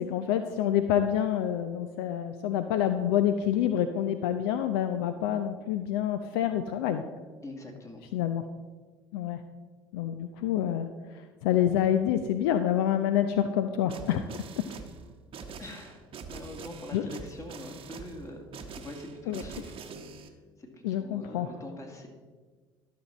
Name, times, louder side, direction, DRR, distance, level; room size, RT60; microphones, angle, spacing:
voice 1, 0.0-7.0 8.1-8.4 9.1-9.4 9.9-10.9 11.4-14.6 16.9-17.0 19.3-19.4 20.8-21.5, left 10 dB, 65° left, 9 dB, 0.5 m, -27 dB
voice 2, 7.4-8.0 15.6-19.8 20.6-22.1, left 1 dB, 25° left, 2 dB, 2.0 m, -44 dB
sound 1, 13.9-20.3, right 5 dB, 40° right, 0.9 m, -44 dB
12.0 x 6.3 x 4.1 m, 1.4 s
figure-of-eight pair, 60°, 13 cm